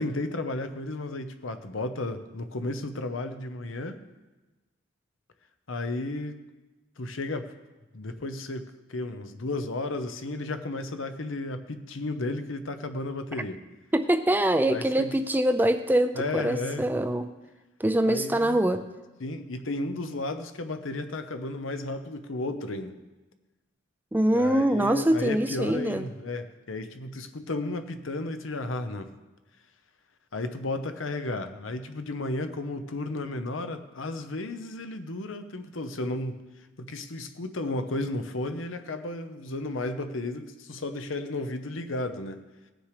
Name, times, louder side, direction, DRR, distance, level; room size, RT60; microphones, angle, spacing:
voice 1, 0.0-4.0 5.7-6.4 7.0-7.5 7.9-13.6 14.7-15.1 16.1-16.9 18.0-18.6 19.2-23.0 24.3-29.1 30.3-36.4 36.8-42.4, left 2 dB, 75° left, 9 dB, 0.9 m, -33 dB
voice 2, 13.9-17.3 17.8-18.9 24.1-26.1, right 1 dB, 10° right, 9 dB, 0.4 m, -24 dB
18.5 x 6.5 x 4.9 m, 1.2 s
head